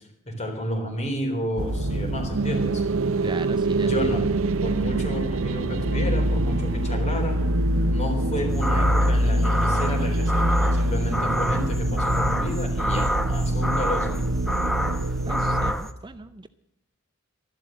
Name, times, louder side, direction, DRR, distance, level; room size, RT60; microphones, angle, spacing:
voice 1, 0.3-2.8 3.8-4.2 4.6-7.4 7.9-10.4 10.7-14.2, equal, 35° left, 3 dB, 3.8 m, -31 dB
sound 1, 1.6-15.7, equal, 85° right, 0.9 m, -25 dB
sound 2, 2.3-11.7, right 4 dB, 70° right, 0.5 m, -29 dB
voice 2, 3.2-4.1 15.3-16.5, right 3 dB, 20° right, 11 dB, 0.5 m, -37 dB
sound 3, 8.5-15.9, equal, ahead, 0.9 m, -28 dB
13.0 x 11.5 x 7.7 m, 0.78 s
head